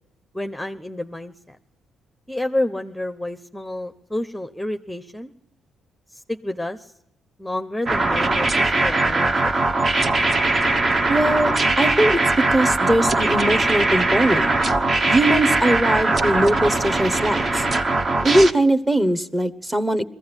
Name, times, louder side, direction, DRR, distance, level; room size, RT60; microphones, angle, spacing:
voice 1, 0.3-1.6 2.3-5.3 6.1-6.9 7.4-9.5, left 1 dB, 5° left, 7 dB, 0.8 m, -29 dB
sound 1, 7.9-18.5, right 2 dB, 40° right, 1.2 m, -20 dB
voice 2, 11.1-14.5 15.1-17.7 18.2-20.0, right 1 dB, 15° right, 11 dB, 1.1 m, -20 dB
21.5 x 15.0 x 9.8 m, 0.82 s
cardioid pair, 90°, 0 cm